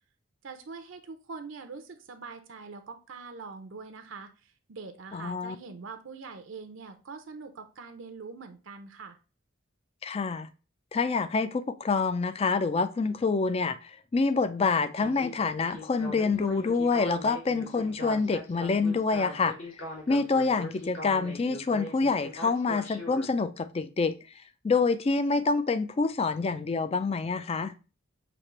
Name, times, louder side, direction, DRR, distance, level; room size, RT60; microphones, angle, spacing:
voice 1, 0.4-9.2, right 4 dB, 60° right, 0.6 m, -43 dB
voice 2, 5.1-5.6 10.0-10.5 10.9-19.5 20.1-24.2 24.6-27.7, left 4 dB, 30° left, 0.3 m, -27 dB
Speech synthesizer, 15.0-23.3, left 1 dB, 60° left, 1.5 m, -40 dB
6.0 x 2.9 x 3.0 m
head